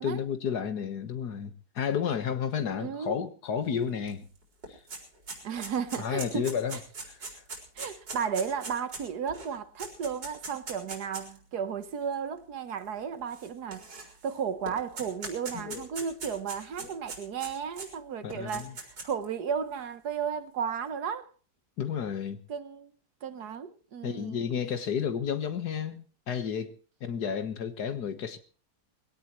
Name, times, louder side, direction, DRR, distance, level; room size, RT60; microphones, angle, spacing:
voice 1, 0.0-4.3 4.7-4.8 6.0-7.2 15.5-15.9 16.8-16.9 18.2-18.7 21.8-22.4 24.0-28.4, left 7 dB, 65° left, 1.9 m, -32 dB
voice 2, 2.8-3.2 5.4-6.8 7.2-7.3 7.7-21.3 22.5-22.9 23.2-24.5, right 7 dB, 65° right, 1.5 m, -34 dB
sound 1, 4.1-4.2 4.4-11.4 12.1-12.2 13.3-14.3 14.7-17.9 18.3-19.2, right 3 dB, 85° right, 4.8 m, -40 dB
21.0 x 17.0 x 3.1 m
omnidirectional pair, 1.9 m